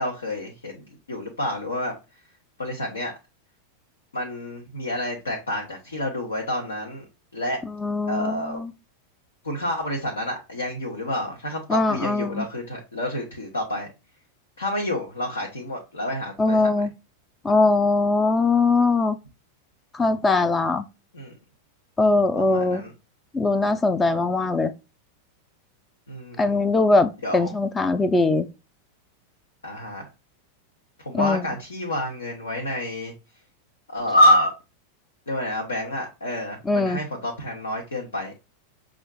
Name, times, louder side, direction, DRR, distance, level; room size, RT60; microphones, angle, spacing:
voice 1, 0.0-1.9 2.6-3.1 4.1-7.1 7.3-7.6 8.1-8.6 9.4-13.9 14.6-16.8 21.1-21.3 22.4-22.9 26.1-26.6 27.2-27.5 29.6-30.1 31.0-33.1 33.9-34.5 35.3-38.3, left 1 dB, 75° left, 0.9 m, -27 dB
voice 2, 7.7-8.7 11.7-12.5 16.4-16.9 17.4-19.2 19.9-20.9 22.0-22.8 23.3-24.7 26.4-28.5 31.1-31.4 36.7-37.0, left 3 dB, 15° left, 0.3 m, -21 dB
6.2 x 2.4 x 2.3 m
figure-of-eight pair, 90°, 0 cm